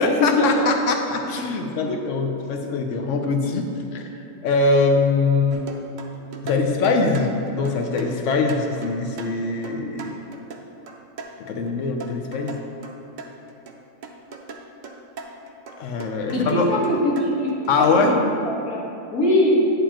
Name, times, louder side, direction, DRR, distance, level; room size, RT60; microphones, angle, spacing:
voice 1, 0.0-3.6 3.9-4.1 4.4-5.6 6.4-10.1 11.4-12.6 15.8-16.7 17.7-18.1, left 4 dB, 65° left, 4 dB, 1.0 m, -22 dB
sound 1, 5.5-11.7 12.0-13.8 14.0-18.0, right 4 dB, 85° right, 0.4 m, -39 dB
voice 2, 16.3-17.5 17.8-18.2 18.4-18.8 19.1-19.6, left 1 dB, 80° left, -6 dB, 2.0 m, -21 dB
9.1 x 7.0 x 2.9 m, 2.9 s
omnidirectional pair, 1.5 m